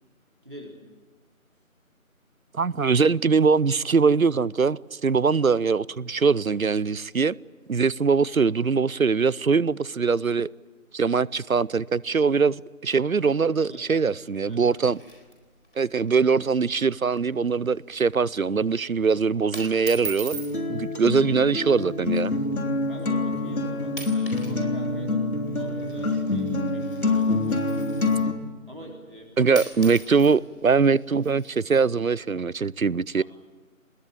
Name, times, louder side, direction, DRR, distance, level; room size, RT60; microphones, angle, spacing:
voice 1, 0.4-0.8 13.6-14.0 14.5-14.6 20.9-21.3 22.9-25.1 25.5-27.6 28.7-29.7 30.2-30.3 33.2-33.3, equal, 35° right, 3.8 m, -44 dB
voice 2, 2.5-7.4 7.7-10.5 10.9-15.0 15.8-20.4 20.7-22.3 29.4-33.2, right 5 dB, 70° right, 0.7 m, -22 dB
sound 1, 14.5-15.8 16.1-16.2 16.5-16.7 17.1-17.4 17.8-18.0 18.8-19.0 19.5-20.6 21.6-21.9 22.5-22.6 23.3-23.6 23.9-24.6 24.8-28.4 29.2-29.3 29.5-31.8, right 4 dB, 40° left, 4.2 m, -41 dB
Acoustic guitar, 20.3-28.3, left 3 dB, 75° left, 3.5 m, -26 dB
23.5 x 20.5 x 9.0 m
figure-of-eight pair, 175°, 43 cm